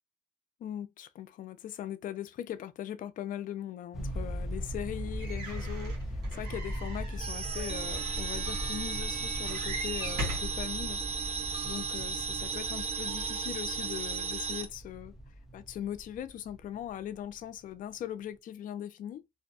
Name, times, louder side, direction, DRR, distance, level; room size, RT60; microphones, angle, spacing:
voice 1, 0.6-11.0 11.6-15.2 15.5-19.2, left 11 dB, 50° left, 0.4 m, -40 dB
sound 1, 3.9-17.2, equal, ahead, 0.8 m, -39 dB
sound 2, 5.2-10.6 11.3-11.4 11.6-11.7, equal, 70° right, 1.4 m, -41 dB
sound 3, 7.2-14.7, right 5 dB, 35° right, 0.5 m, -35 dB
2.6 x 2.2 x 2.6 m
cardioid pair, 110°, 17 cm